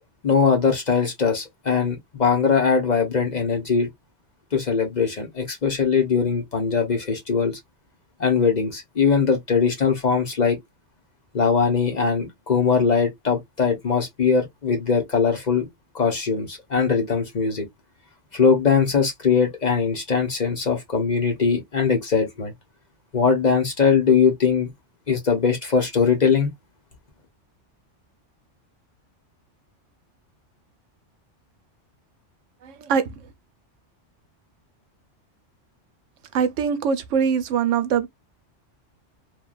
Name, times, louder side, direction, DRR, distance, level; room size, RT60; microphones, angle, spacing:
voice 1, 0.2-3.9 4.5-7.6 8.2-10.6 11.3-15.7 15.9-17.7 18.3-22.5 23.1-24.7 25.1-26.5, left 5 dB, 45° left, 0.7 m, -21 dB
voice 2, 32.6-33.3 36.3-38.1, right 7 dB, 85° right, 0.9 m, -23 dB
3.1 x 2.2 x 2.3 m
omnidirectional pair, 1.2 m